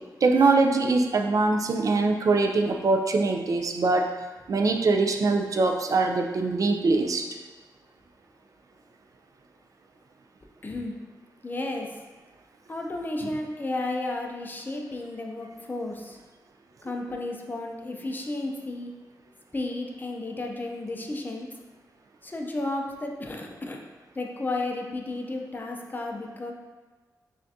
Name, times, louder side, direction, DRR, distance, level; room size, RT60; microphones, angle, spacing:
voice 1, 0.2-4.1 4.5-7.2, right 3 dB, 55° right, 3 dB, 0.4 m, -23 dB
voice 2, 10.6-10.9 11.4-11.9 12.7-16.2 16.8-18.9 19.5-21.5 22.2-23.8 24.2-26.5, left 2 dB, 25° left, 1 dB, 0.5 m, -33 dB
5.7 x 2.5 x 2.6 m, 1.3 s
wide cardioid pair, 100°, 7 cm